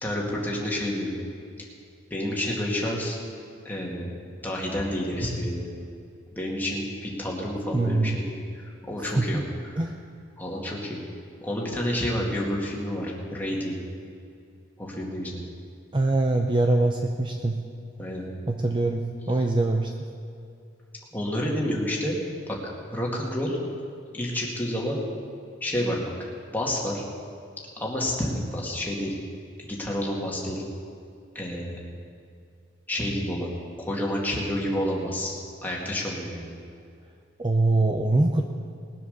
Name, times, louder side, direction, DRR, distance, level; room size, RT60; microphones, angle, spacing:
voice 1, 0.0-1.1 1.6-1.7 2.1-3.2 3.6-4.1 4.4-5.7 6.3-9.4 9.7-9.8 10.4-11.0 11.4-13.8 14.8-15.4 18.0-18.2 21.1-22.2 22.5-22.6 22.9-23.6 24.1-25.0 25.6-26.0 26.5-27.0 27.8-29.1 29.6-30.6 31.3-31.8 32.9-33.5 33.8-35.3 35.6-36.5, left 1 dB, 10° left, -3 dB, 2.3 m, -29 dB
voice 2, 7.7-8.2 9.0-9.4 9.8-9.9 15.9-17.6 18.5-19.9 37.4-38.4, right 2 dB, 25° right, 3 dB, 0.6 m, -23 dB
20.0 x 7.8 x 6.7 m, 2.4 s
head